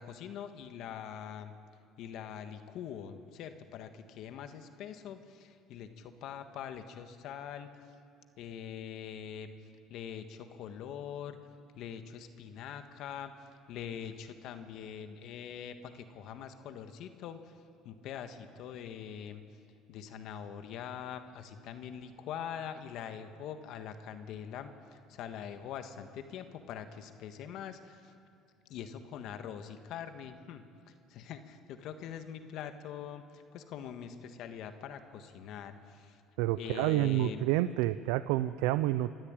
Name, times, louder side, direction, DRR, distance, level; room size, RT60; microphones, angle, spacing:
voice 1, 0.0-1.5 2.0-7.7 8.4-9.5 9.9-11.4 11.7-13.3 13.7-17.5 17.8-19.4 19.9-28.1 28.7-30.6 31.1-36.2 36.6-37.4, left 8 dB, 65° left, 8 dB, 1.5 m, -43 dB
voice 2, 36.4-39.1, right 15 dB, 90° right, 14 dB, 0.4 m, -29 dB
25.0 x 13.0 x 8.9 m, 2.4 s
cardioid pair, 110°, 0 cm